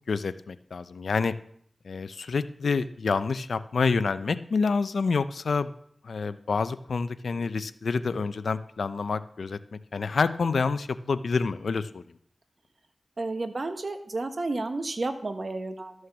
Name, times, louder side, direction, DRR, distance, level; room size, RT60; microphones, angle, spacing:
voice 1, 0.1-1.3 1.8-5.7 6.0-9.6 9.9-12.0, left 4 dB, 80° left, 14 dB, 0.6 m, -28 dB
voice 2, 13.2-15.9, right 2 dB, 55° right, 8 dB, 1.4 m, -31 dB
13.0 x 6.4 x 7.1 m, 0.65 s
cardioid pair, 40°, 0 cm